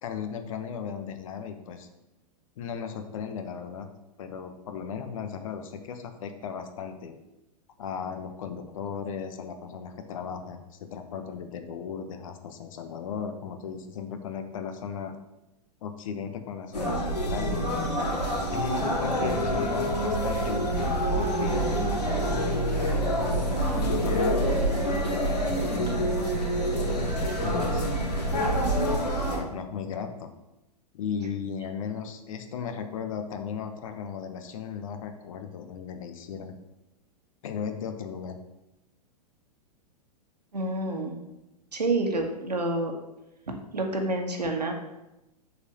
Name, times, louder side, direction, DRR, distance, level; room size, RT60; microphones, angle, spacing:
voice 1, 0.0-1.9 2.6-3.9 4.2-7.2 7.8-15.1 15.8-17.8 18.5-22.6 23.1-27.9 29.3-30.3 30.9-36.5 37.4-38.4, left 7 dB, 55° left, 7 dB, 1.1 m, -36 dB
sound 1, 16.7-29.4, right 1 dB, 75° left, 2.7 m, -26 dB
voice 2, 40.5-41.2 41.7-42.9 43.7-44.7, right 2 dB, 80° right, 3 dB, 1.6 m, -28 dB
7.1 x 4.4 x 6.8 m, 0.93 s
figure-of-eight pair, 100°, 21 cm